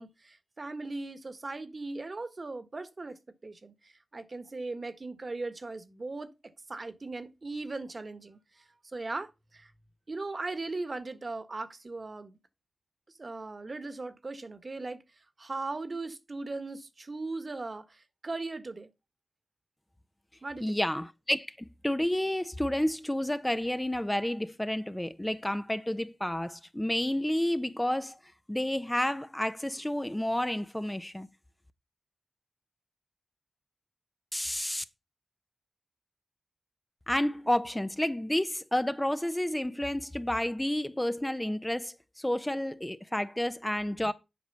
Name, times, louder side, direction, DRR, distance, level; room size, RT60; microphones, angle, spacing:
voice 1, 0.0-3.7 4.1-6.3 6.7-8.6 8.9-9.7 10.1-12.4 13.2-15.0 15.4-18.9 20.4-20.8, right 3 dB, 45° right, 1.4 m, -38 dB
voice 2, 20.6-28.2 28.5-31.3 34.3-34.8 37.1-44.1, left 1 dB, 10° left, 0.7 m, -30 dB
8.1 x 4.8 x 6.8 m
cardioid pair, 50°, 0 cm